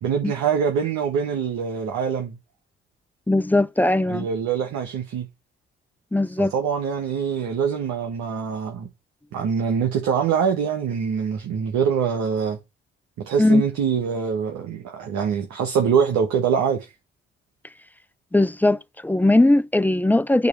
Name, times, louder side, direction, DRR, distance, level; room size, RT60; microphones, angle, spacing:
voice 1, 0.0-2.4 4.1-5.3 6.4-8.9 9.3-12.6 13.2-16.9, right 7 dB, 65° right, 1.5 m, -24 dB
voice 2, 3.3-4.3 6.1-6.5 13.4-13.6 18.3-20.5, left 2 dB, 5° left, 0.4 m, -19 dB
8.1 x 3.2 x 6.4 m
hypercardioid pair, 45°, 30 cm